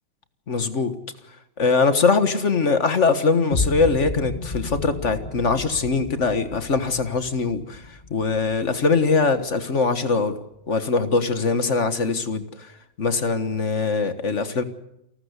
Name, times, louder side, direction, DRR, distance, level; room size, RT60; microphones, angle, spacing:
voice 1, 0.5-0.9 1.6-7.8 8.1-10.4 10.7-12.4 13.0-14.6, left 4 dB, 45° left, 1.7 m, -22 dB
sound 1, 3.5-9.5, left 3 dB, 25° left, 1.7 m, -32 dB
29.0 x 13.0 x 8.2 m
omnidirectional pair, 1.9 m